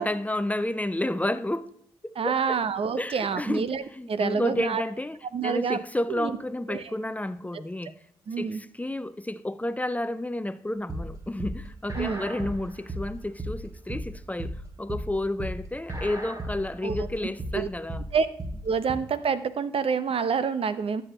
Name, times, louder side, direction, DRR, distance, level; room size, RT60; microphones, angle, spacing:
voice 1, 0.0-1.7 2.0-2.6 3.0-8.0 8.4-18.0, left 1 dB, 15° left, 0.6 m, -31 dB
voice 2, 2.2-3.8 4.1-4.8 5.3-5.8 6.1-6.4 6.7-6.9 7.5-7.6 8.3-8.6 11.9-12.2 16.8-17.1 17.5-17.7 18.1-18.3 18.6-21.0, right 6 dB, 60° right, 0.7 m, -27 dB
sound 1, 10.9-18.9, right 1 dB, 30° right, 1.9 m, -35 dB
13.0 x 7.0 x 3.0 m
supercardioid pair, 45°, 11 cm